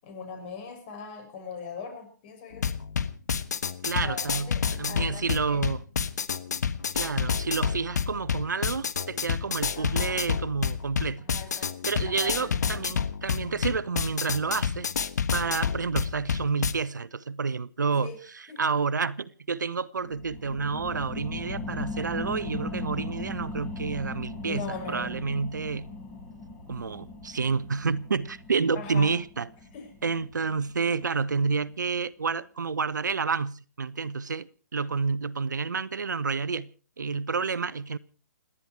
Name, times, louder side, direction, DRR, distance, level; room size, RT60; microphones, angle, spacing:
voice 1, 0.0-2.7 3.9-5.6 9.7-10.2 11.2-12.8 18.0-18.2 18.5-18.6 24.5-25.3 28.8-29.1 29.7-29.9, left 5 dB, 35° left, 6.8 m, -40 dB
sound 1, 2.5-16.7, left 7 dB, 65° left, 1.3 m, -29 dB
voice 2, 3.8-5.8 6.9-11.3 11.5-14.9 15.3-25.9 26.7-29.5 30.0-36.7 37.0-38.0, right 5 dB, 80° right, 0.9 m, -29 dB
sound 2, 20.0-31.2 31.6-31.7, left 3 dB, 10° left, 7.8 m, -39 dB
29.0 x 10.0 x 4.6 m
hypercardioid pair, 140°, 10 cm